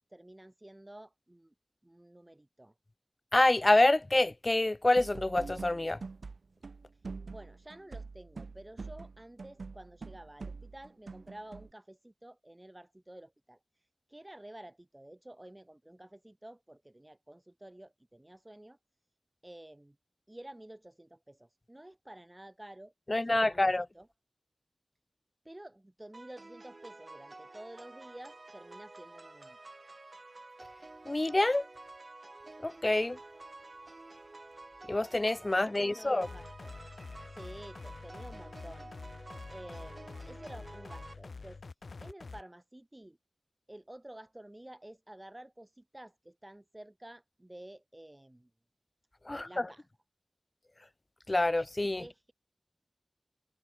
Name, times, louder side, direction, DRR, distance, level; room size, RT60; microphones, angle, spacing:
voice 1, 0.1-1.5 1.8-2.7 6.9-18.8 19.4-20.0 20.3-24.1 25.4-29.6 35.5-36.7 37.3-38.9 39.5-41.6 42.0-43.2 43.7-48.5 49.3-49.9 52.0-52.3, right 1 dB, 20° right, 7.8 m, -51 dB
voice 2, 3.3-6.0 23.1-23.9 31.1-31.6 32.6-33.2 34.9-36.3 49.3-49.7 51.3-52.0, left 2 dB, 35° left, 0.7 m, -27 dB
sound 1, 5.0-6.4 6.6-11.7, right 4 dB, 85° right, 5.4 m, -45 dB
sound 2, 26.1-41.1, right 2 dB, 50° right, 2.1 m, -51 dB
sound 3, 36.2-42.4, left 4 dB, 85° left, 3.0 m, -47 dB
wide cardioid pair, 50°, 0 cm